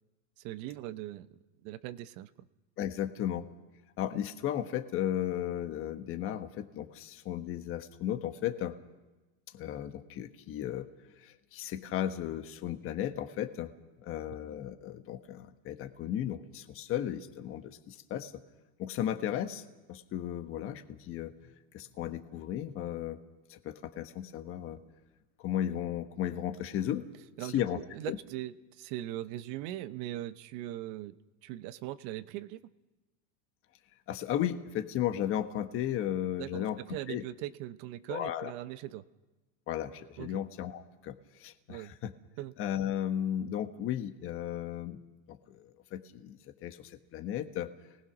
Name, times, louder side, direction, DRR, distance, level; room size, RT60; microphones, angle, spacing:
voice 1, 0.4-2.5 27.4-31.2 31.4-32.6 36.4-39.0 40.2-40.4 41.7-41.9 42.4-42.5, right 14 dB, 50° right, 14 dB, 0.9 m, -40 dB
voice 2, 2.8-3.5 4.0-8.7 9.5-10.9 11.2-13.7 14.0-18.3 18.8-19.6 19.9-21.3 21.7-23.2 23.5-24.8 25.4-27.1 27.4-27.8 28.1-28.2 34.1-36.8 37.1-37.2 38.1-38.5 39.7-42.1 42.6-45.0 45.3-47.7, left 11 dB, 35° left, 7 dB, 1.3 m, -35 dB
28.5 x 19.5 x 6.1 m, 1.1 s
supercardioid pair, 140°, 37 cm